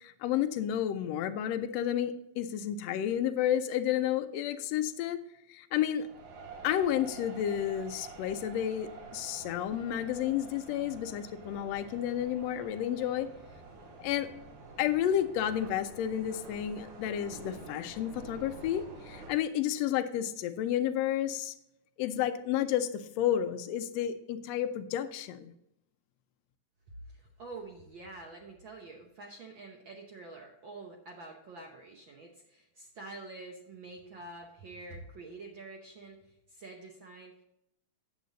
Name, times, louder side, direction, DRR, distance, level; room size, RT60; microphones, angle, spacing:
voice 1, 0.0-5.2 5.5-6.1 6.6-13.3 14.0-14.3 14.8-21.5 22.0-25.5, left 10 dB, 75° left, 9 dB, 1.6 m, -31 dB
sound 1, 6.0-19.3, right 4 dB, 80° right, 3.1 m, -48 dB
voice 2, 27.1-37.4, right 3 dB, 65° right, 1 dB, 1.2 m, -47 dB
9.4 x 7.8 x 4.0 m, 0.80 s
omnidirectional pair, 3.4 m